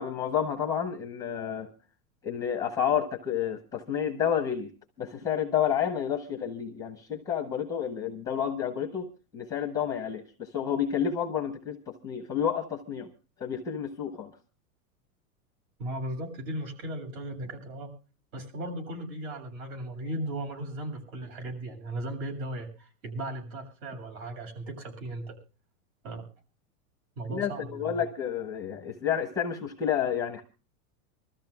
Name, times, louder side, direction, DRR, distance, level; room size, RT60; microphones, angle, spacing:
voice 1, 0.0-1.7 2.2-4.7 5.0-9.1 9.3-13.1 13.4-14.3 27.3-30.4, left 8 dB, 10° left, 0.6 m, -30 dB
voice 2, 15.8-17.9 18.3-25.4 26.0-26.3 27.2-28.0, right 1 dB, 65° right, 7.4 m, -37 dB
25.5 x 14.0 x 2.3 m
supercardioid pair, 170°, 44 cm